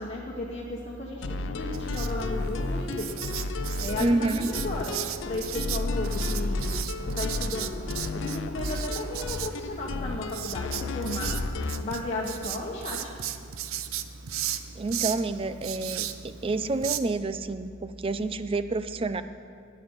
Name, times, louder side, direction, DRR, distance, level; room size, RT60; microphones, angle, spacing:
voice 1, 0.0-3.2 3.8-7.8 8.1-11.4 11.8-13.1, left 2 dB, 30° left, -4 dB, 1.2 m, -34 dB
sound 1, 1.2-11.9, left 2 dB, 65° left, 0.6 m, -32 dB
Writing, 1.7-17.0, right 11 dB, 85° right, 0.5 m, -37 dB
sound 2, 3.4-3.5 4.3-4.4 5.0-5.2 6.0-6.2 7.0-7.1 7.7-9.8 10.4-11.2, equal, 55° right, 3.6 m, -51 dB
voice 2, 4.0-4.5 14.8-19.2, right 2 dB, 25° right, 12 dB, 0.4 m, -28 dB
9.5 x 9.3 x 7.9 m, 2.4 s
head